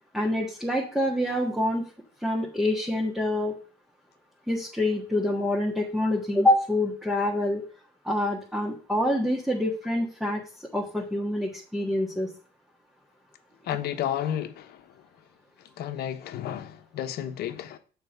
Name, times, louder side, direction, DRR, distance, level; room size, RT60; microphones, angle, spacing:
voice 1, 0.1-1.8 2.2-3.6 4.5-7.6 8.0-10.4 10.7-12.3, left 1 dB, ahead, 1.5 m, -26 dB
voice 2, 13.7-14.8 15.8-17.8, left 10 dB, 70° left, 1.0 m, -32 dB
6.9 x 4.5 x 6.5 m
cardioid pair, 110°, 17 cm